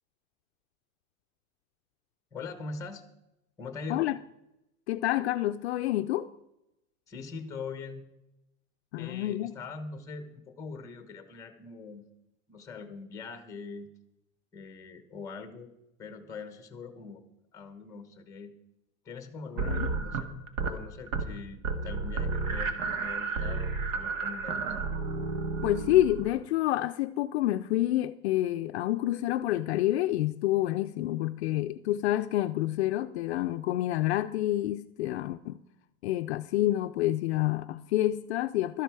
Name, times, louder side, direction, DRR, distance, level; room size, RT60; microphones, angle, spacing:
voice 1, 2.3-3.0 3.6-4.0 7.1-8.1 9.0-12.0 12.5-13.9 14.5-15.7 16.0-17.2 17.5-18.5 19.0-20.3 20.6-24.6, left 4 dB, 10° left, 1.0 m, -42 dB
voice 2, 4.9-6.3 8.9-9.5 19.6-19.9 25.6-35.6 36.0-38.8, left 14 dB, 55° left, 0.5 m, -28 dB
sound 1, 19.6-20.8 21.1-21.4 21.6-26.4, right 4 dB, 65° right, 1.8 m, -32 dB
13.0 x 12.0 x 4.7 m
supercardioid pair, 175°, 40 cm